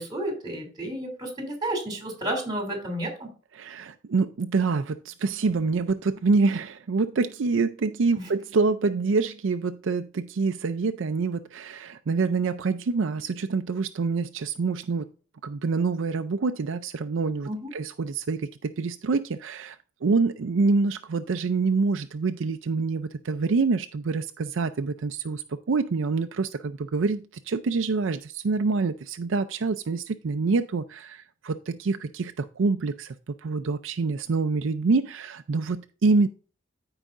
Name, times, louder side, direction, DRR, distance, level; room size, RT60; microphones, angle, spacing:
voice 1, 0.0-3.3 8.1-8.3 17.5-17.7, right 1 dB, 20° right, 2.8 m, -31 dB
voice 2, 3.5-15.1 15.4-33.1 33.4-36.3, right 4 dB, 70° right, 0.5 m, -26 dB
14.5 x 4.8 x 2.5 m
head